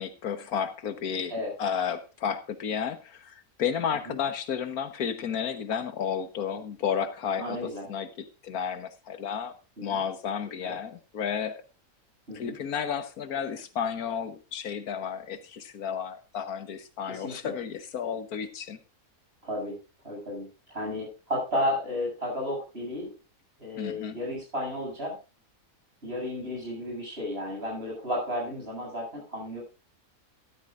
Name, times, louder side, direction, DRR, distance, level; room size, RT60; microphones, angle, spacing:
voice 1, 0.0-1.3 1.6-9.5 9.8-11.6 12.3-18.8 23.8-24.2, left 7 dB, 85° left, 11 dB, 1.6 m, -32 dB
voice 2, 7.4-7.9 9.8-10.0 10.6-10.7 12.3-12.5 17.1-17.5 19.4-19.8 20.0-23.1 23.6-25.1 26.0-29.6, left 1 dB, 45° right, -1 dB, 7.8 m, -33 dB
13.5 x 13.0 x 2.5 m, 0.30 s
omnidirectional pair, 1.5 m